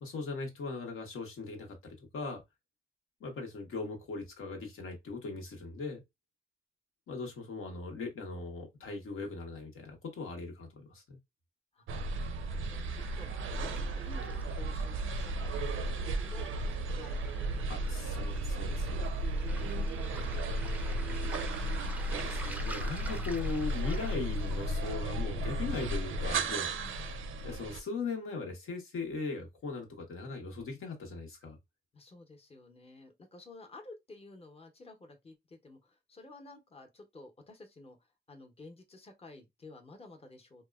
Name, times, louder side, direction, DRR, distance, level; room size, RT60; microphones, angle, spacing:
voice 1, 0.0-2.4 3.2-6.0 7.1-11.2 17.7-19.0 22.0-26.7 27.4-31.6, left 4 dB, 85° left, 0.9 m, -39 dB
voice 2, 11.7-15.6 16.2-16.5 16.9-17.8 19.5-22.4 26.7-27.0 31.9-40.6, left 2 dB, 30° left, 0.7 m, -53 dB
sound 1, 11.9-27.8, right 1 dB, 80° right, 0.4 m, -34 dB
Waves surf, 13.0-25.0, right 1 dB, 5° right, 0.4 m, -49 dB
2.9 x 2.1 x 2.2 m
cardioid pair, 70°, 21 cm